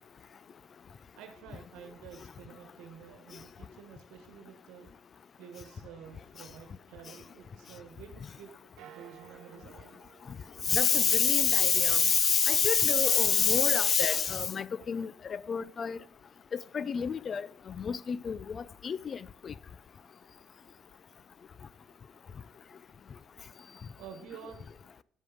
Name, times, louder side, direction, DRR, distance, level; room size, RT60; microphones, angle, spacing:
voice 1, 1.1-4.9 5.4-10.0 24.0-24.7, right 8 dB, 90° right, 1.3 m, -50 dB
sound 1, 6.6-8.4 8.8-12.3 12.8-14.0, right 12 dB, 75° right, 0.5 m, -56 dB
voice 2, 10.7-16.0 16.5-19.5, left 6 dB, 40° left, 0.5 m, -27 dB
9.7 x 7.8 x 5.0 m
cardioid pair, 110°, 0 cm